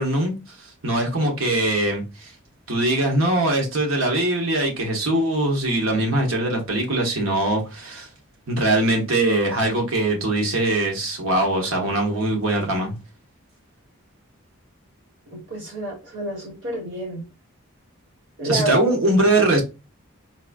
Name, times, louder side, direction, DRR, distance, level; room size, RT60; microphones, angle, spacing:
voice 1, 0.0-2.3 2.7-8.1 8.5-13.0 18.5-19.6, right 1 dB, 80° right, 1.1 m, -22 dB
voice 2, 15.3-17.2 18.4-18.8, right 2 dB, 60° right, 1.9 m, -29 dB
4.0 x 2.5 x 2.3 m
head